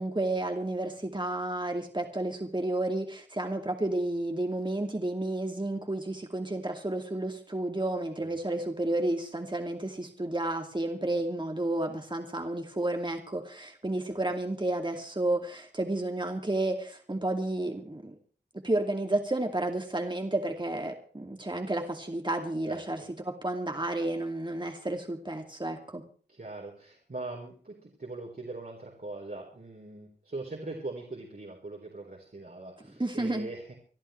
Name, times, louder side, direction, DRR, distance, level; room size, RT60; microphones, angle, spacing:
voice 1, 0.0-18.2 18.6-26.0 33.0-33.5, right 1 dB, 25° right, 3 dB, 2.3 m, -31 dB
voice 2, 22.7-23.1 26.3-33.8, right 2 dB, 60° right, -2 dB, 4.0 m, -41 dB
26.5 x 12.0 x 3.3 m, 0.42 s
wide cardioid pair, 40°, 17 cm